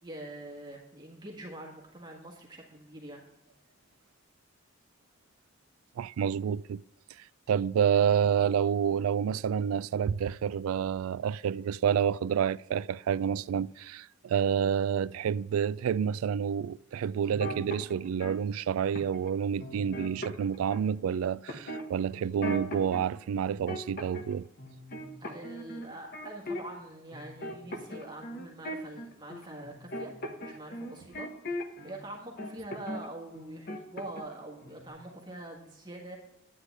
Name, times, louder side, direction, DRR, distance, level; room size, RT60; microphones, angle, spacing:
voice 1, 0.0-3.2 25.2-30.1 30.4-36.2, right 1 dB, 20° right, 1.6 m, -44 dB
voice 2, 6.0-6.8 7.5-24.5, right 8 dB, 85° right, 0.3 m, -29 dB
sound 1, 17.3-18.4 19.0-19.3 19.6-20.9 21.5-23.0 23.4-24.3 24.6-26.8 27.1-32.0 32.4-33.1 33.3-34.4 34.6-34.9, equal, 45° left, 1.2 m, -39 dB
9.8 x 9.7 x 3.4 m
head